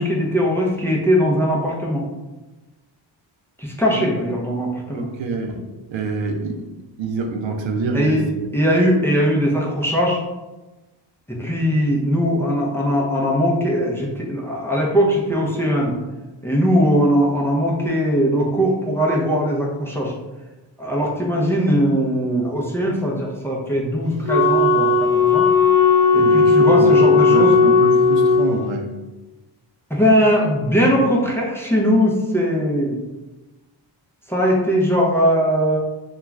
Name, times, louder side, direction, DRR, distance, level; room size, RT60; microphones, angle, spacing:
voice 1, 0.0-2.1 3.6-5.1 7.9-10.2 11.3-15.9 16.4-20.1 20.8-25.4 26.1-27.5 29.9-33.0 34.3-35.8, equal, 5° left, -3 dB, 0.5 m, -20 dB
voice 2, 4.9-5.6 5.9-6.6 7.0-8.2 26.2-28.9, right 3 dB, 75° right, 4 dB, 0.5 m, -26 dB
Wind instrument woodwind instrument, 24.3-28.6, left 4 dB, 45° left, 0.9 m, -15 dB
2.3 x 2.3 x 3.1 m, 1.1 s
cardioid pair, 80°, 46 cm